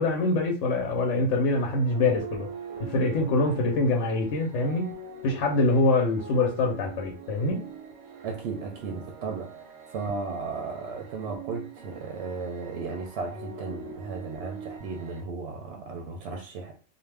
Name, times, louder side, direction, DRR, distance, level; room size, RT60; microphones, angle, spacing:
voice 1, 0.0-2.5 2.8-4.9 5.2-7.6, left 2 dB, 80° left, 0.9 m, -24 dB
sound 1, 1.5-15.2, right 5 dB, 90° right, 1.0 m, -43 dB
voice 2, 8.2-16.8, right 4 dB, 70° right, 0.8 m, -35 dB
2.5 x 2.1 x 3.2 m
omnidirectional pair, 1.3 m